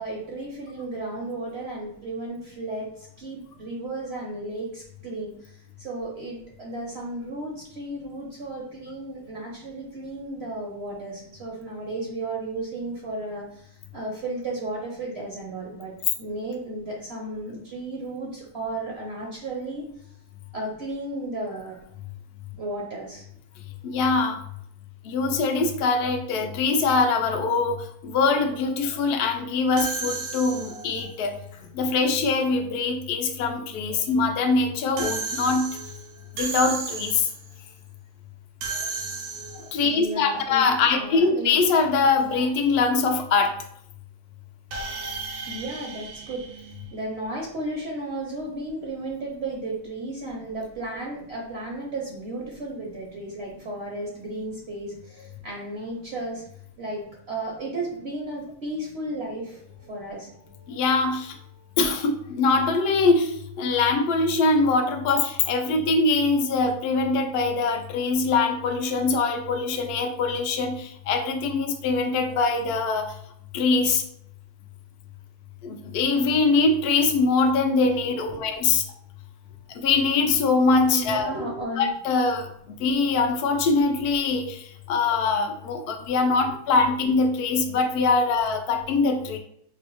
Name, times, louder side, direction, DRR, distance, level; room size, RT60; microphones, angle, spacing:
voice 1, 0.0-20.1 20.5-21.8 22.6-23.2 39.9-40.7 40.9-41.6 45.5-56.4 56.8-57.0 57.3-60.8 61.5-61.7 78.3-78.5 80.9-81.9 85.9-86.1 86.5-86.6, right 2 dB, 55° right, -2 dB, 0.8 m, -34 dB
voice 2, 23.8-24.4 25.0-31.3 31.7-35.7 36.4-37.3 39.5-43.5 60.7-61.4 61.8-73.1 73.5-74.0 75.6-78.8 79.7-81.3 81.8-82.5 82.8-89.4, left 4 dB, 70° left, 5 dB, 0.5 m, -23 dB
sound 1, 29.8-31.0 35.0-37.5 38.6-39.9 44.7-47.3, right 4 dB, 85° right, 1.1 m, -34 dB
4.7 x 2.0 x 3.0 m, 0.70 s
omnidirectional pair, 1.6 m